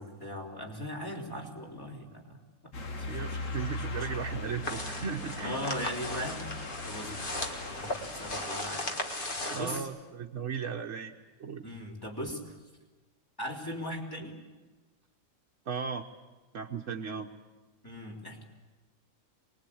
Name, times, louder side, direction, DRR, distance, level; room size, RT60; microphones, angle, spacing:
voice 1, 0.0-4.1 5.4-7.3 7.6-9.3 9.5-9.9 11.6-12.4 13.4-14.4 17.8-18.4, equal, 15° left, 0 dB, 3.5 m, -39 dB
sound 1, 2.7-8.5, left 2 dB, 65° left, 1.9 m, -39 dB
voice 2, 3.1-5.6 9.5-11.6 15.7-16.1 16.5-17.3, right 6 dB, 60° right, 0 dB, 1.2 m, -36 dB
sound 2, 4.6-9.8, left 1 dB, 40° left, 2.0 m, -37 dB
24.0 x 20.5 x 8.5 m, 1.2 s
omnidirectional pair, 1.4 m